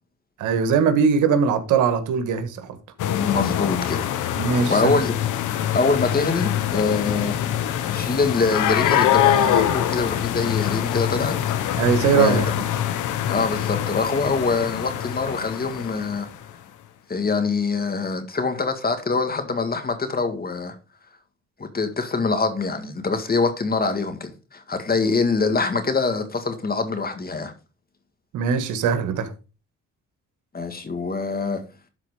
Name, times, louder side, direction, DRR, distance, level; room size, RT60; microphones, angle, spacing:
voice 1, 0.4-2.8 4.4-4.9 11.8-12.5 28.3-29.3, right 6 dB, 85° right, 1.5 m, -21 dB
sound 1, 3.0-16.5, left 10 dB, 85° left, 1.1 m, -24 dB
voice 2, 3.1-4.0 4.7-5.2 5.7-7.4 7.9-11.4 12.1-12.5 13.3-16.3 17.1-20.8 21.6-27.5 30.5-31.6, left 4 dB, 30° left, 1.9 m, -24 dB
12.0 x 4.2 x 4.8 m
cardioid pair, 90°, 30 cm